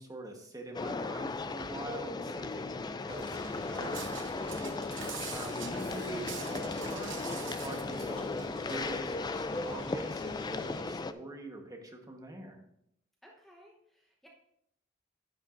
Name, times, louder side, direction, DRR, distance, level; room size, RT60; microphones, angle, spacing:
voice 1, 0.0-4.7 5.3-12.6, right 1 dB, 20° right, 2 dB, 1.2 m, -44 dB
sound 1, 0.7-11.1, left 3 dB, 20° left, 0.3 m, -36 dB
sound 2, 3.1-10.8, left 2 dB, 75° left, 2.8 m, -50 dB
Walk footsteps, 3.2-9.0, right 6 dB, 70° right, 0.9 m, -45 dB
voice 2, 13.2-14.3, equal, ahead, -2 dB, 0.9 m, -59 dB
10.5 x 10.0 x 2.6 m, 0.76 s
head